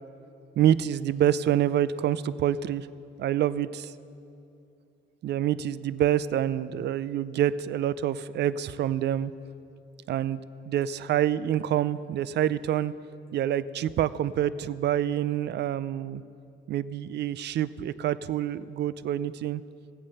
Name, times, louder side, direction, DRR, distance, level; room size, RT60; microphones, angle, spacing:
voice 1, 0.6-2.9 3.2-3.9 5.2-9.3 10.1-10.4 10.7-12.9 13.3-16.2 16.7-19.6, right 11 dB, 60° right, 17 dB, 0.4 m, -27 dB
15.0 x 8.5 x 5.6 m, 2.7 s
cardioid pair, 90°, 20 cm